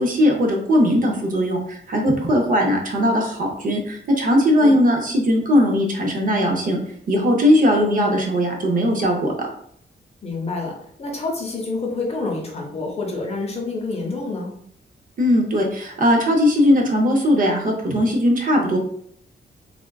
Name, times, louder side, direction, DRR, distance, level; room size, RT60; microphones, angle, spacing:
voice 1, 0.0-6.8 7.1-9.3 15.2-18.8, equal, 45° right, 1 dB, 0.5 m, -19 dB
voice 2, 10.2-14.5, left 3 dB, 35° left, -1 dB, 0.6 m, -28 dB
3.5 x 2.3 x 2.2 m, 0.66 s
wide cardioid pair, 155°, 19 cm